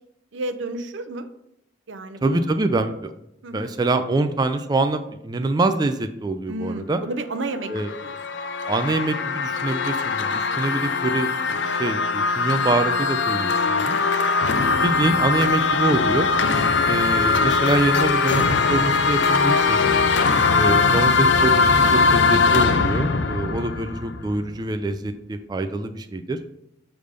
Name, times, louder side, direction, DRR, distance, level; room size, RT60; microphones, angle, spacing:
voice 1, 0.3-1.3 1.9-2.5 3.4-3.7 6.5-7.7 8.0-8.4 20.8-21.2, right 2 dB, 85° right, 11 dB, 0.5 m, -32 dB
voice 2, 2.2-3.1 3.5-7.0 7.7-7.9 8.7-14.0 14.6-16.3 16.8-19.8 20.5-26.4, right 2 dB, 20° right, 8 dB, 0.3 m, -25 dB
sound 1, 7.5-24.5, left 4 dB, 75° left, 0.5 m, -21 dB
6.6 x 3.4 x 5.1 m, 0.81 s
head